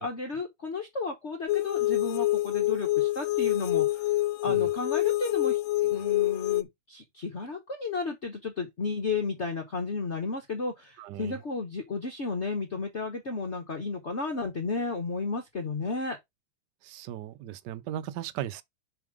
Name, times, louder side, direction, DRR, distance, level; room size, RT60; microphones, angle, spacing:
voice 1, 0.0-4.1 4.4-16.2, left 4 dB, 40° left, 1.1 m, -33 dB
sound 1, 1.5-6.6, left 16 dB, 85° left, 1.5 m, -26 dB
voice 2, 11.0-11.4 16.8-18.6, right 11 dB, 70° right, 1.0 m, -37 dB
7.1 x 3.6 x 4.9 m
omnidirectional pair, 2.3 m